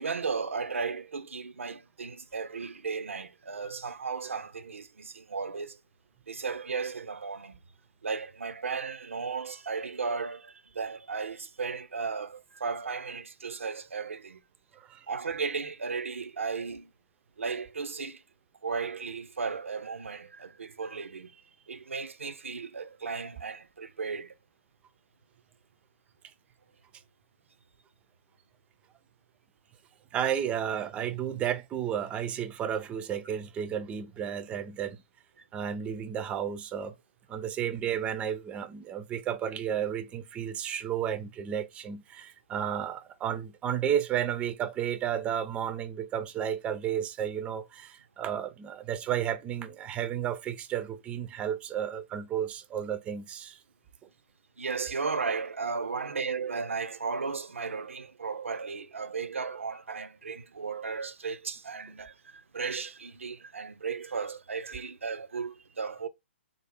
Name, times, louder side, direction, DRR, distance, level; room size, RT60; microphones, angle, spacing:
voice 1, 0.0-5.8 6.3-7.6 8.0-14.4 15.1-16.9 17.4-18.2 18.6-21.4 21.7-24.3 54.6-66.1, right 5 dB, 80° right, 0.5 m, -35 dB
voice 2, 14.7-15.1 30.1-35.0 35.5-37.0 37.3-53.6, right 9 dB, 15° right, 0.4 m, -32 dB
3.5 x 2.0 x 3.4 m
figure-of-eight pair, 130°, 7 cm